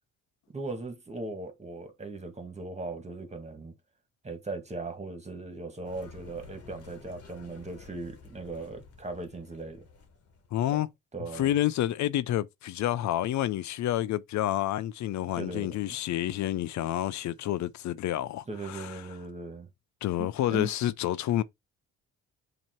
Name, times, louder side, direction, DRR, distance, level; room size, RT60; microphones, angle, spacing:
voice 1, 0.5-3.7 4.2-9.9 10.7-10.8 11.1-11.5 15.3-15.8 18.5-19.7 20.2-20.7, right 3 dB, 20° right, 1.9 m, -38 dB
sound 1, 5.8-10.8, left 4 dB, 50° left, 1.7 m, -51 dB
voice 2, 10.5-10.9 11.3-19.0 20.0-21.4, left 13 dB, 70° left, 0.5 m, -29 dB
7.3 x 3.0 x 4.5 m
cardioid pair, 90°, 30 cm